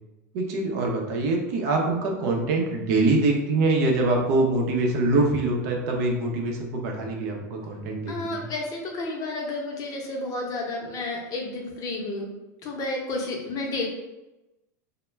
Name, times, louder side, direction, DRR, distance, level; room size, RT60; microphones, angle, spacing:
voice 1, 0.3-8.5, right 2 dB, 65° right, 0 dB, 0.6 m, -24 dB
voice 2, 8.1-12.3 12.6-13.9, left 2 dB, 40° left, 0 dB, 0.7 m, -31 dB
2.2 x 2.1 x 3.2 m, 0.99 s
hypercardioid pair, 100°, 9 cm